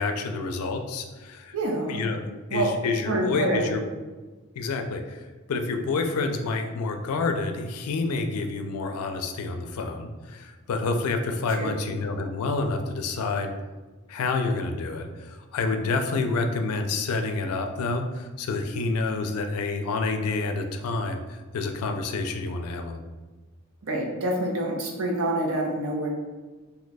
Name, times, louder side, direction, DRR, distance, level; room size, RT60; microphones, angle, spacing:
voice 1, 0.0-1.6 1.9-3.8 4.6-13.5 14.1-23.0, left 3 dB, 85° left, 5 dB, 0.4 m, -28 dB
voice 2, 1.5-2.0 2.5-2.7 3.1-3.7 11.6-11.7 23.9-26.1, right 2 dB, 70° right, 0 dB, 0.6 m, -26 dB
2.7 x 2.2 x 4.0 m, 1.3 s
head